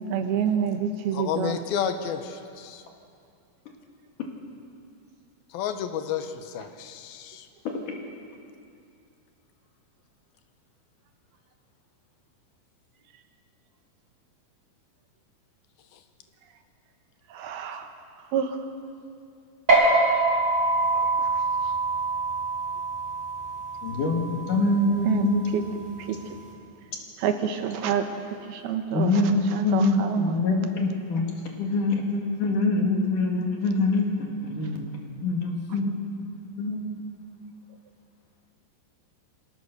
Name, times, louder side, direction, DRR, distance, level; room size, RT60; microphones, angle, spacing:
voice 1, 0.1-1.6 17.3-17.9 18.3-18.6 20.9-21.4 25.1-25.6 26.1-26.2 27.2-28.1 28.4-30.4, right 8 dB, 90° right, 6 dB, 3.2 m, -28 dB
voice 2, 1.1-2.8 5.5-7.5, left 8 dB, 85° left, 8 dB, 2.9 m, -31 dB
sound 1, 19.7-26.5, right 2 dB, 20° right, 4.4 m, -25 dB
voice 3, 23.8-25.5 28.9-31.3 31.6-34.9 35.2-36.0 36.6-36.8, left 2 dB, 60° left, 1 dB, 3.6 m, -24 dB
24.5 x 17.5 x 6.8 m, 2.4 s
omnidirectional pair, 4.2 m